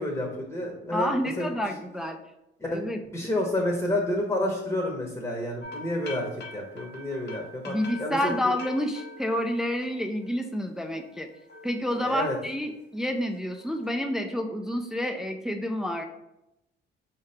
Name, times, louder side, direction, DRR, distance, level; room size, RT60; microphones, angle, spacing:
voice 1, 0.0-1.5 2.7-8.6 12.0-12.4, left 1 dB, 15° left, -1 dB, 0.9 m, -30 dB
voice 2, 0.9-2.2 2.7-3.0 7.7-11.3 11.6-16.0, equal, 5° right, 5 dB, 0.3 m, -29 dB
sound 1, 5.6-10.4 10.8-12.8 13.2-13.9, left 2 dB, 60° left, 0.8 m, -44 dB
4.6 x 2.8 x 3.3 m, 0.89 s
cardioid pair, 90°, 20 cm